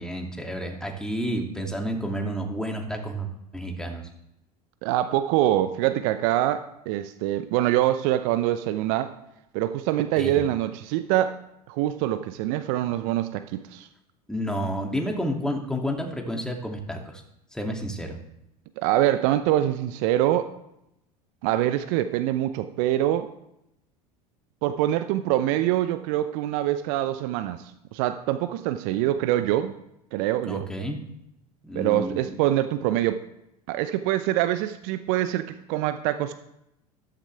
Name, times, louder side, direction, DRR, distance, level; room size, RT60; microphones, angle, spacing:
voice 1, 0.0-3.3 3.5-4.0 10.2-10.4 14.3-17.2 17.5-18.2 30.5-31.0 31.6-32.2, equal, 5° left, 2 dB, 2.6 m, -30 dB
voice 2, 4.8-9.1 9.5-11.3 11.7-13.9 18.8-20.5 21.4-23.3 24.6-29.7 30.1-30.7 31.7-33.2 33.7-36.4, right 13 dB, 55° right, 11 dB, 0.8 m, -24 dB
13.5 x 13.0 x 3.4 m, 0.82 s
figure-of-eight pair, 75°, 20 cm